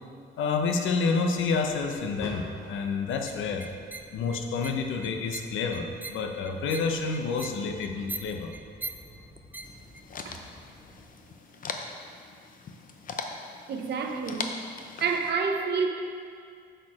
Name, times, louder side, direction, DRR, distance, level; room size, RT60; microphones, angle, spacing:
voice 1, 0.4-3.6 4.1-8.5, left 4 dB, 85° left, 4 dB, 0.8 m, -29 dB
sound 1, 1.4-11.1, left 1 dB, 15° left, 1.3 m, -50 dB
sound 2, 3.3-10.0, right 2 dB, 10° right, 0.3 m, -43 dB
sound 3, 9.6-15.3, left 4 dB, 45° left, 0.6 m, -40 dB
voice 2, 13.7-14.6 15.0-15.9, right 5 dB, 60° right, 4 dB, 0.8 m, -28 dB
6.5 x 6.4 x 4.8 m, 2.2 s
cardioid pair, 110°, 20 cm